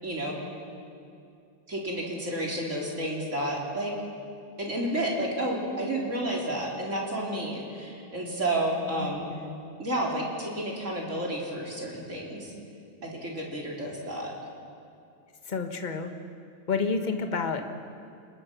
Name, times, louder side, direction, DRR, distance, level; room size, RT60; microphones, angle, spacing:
voice 1, 0.0-0.5 1.7-3.9 4.6-9.3 9.8-12.5 13.0-14.3, right 1 dB, 35° right, -2 dB, 4.1 m, -31 dB
voice 2, 9.0-9.6 15.4-16.1 16.7-17.6, left 4 dB, 25° left, 5 dB, 1.3 m, -30 dB
29.5 x 20.0 x 6.1 m, 2.5 s
omnidirectional pair, 2.2 m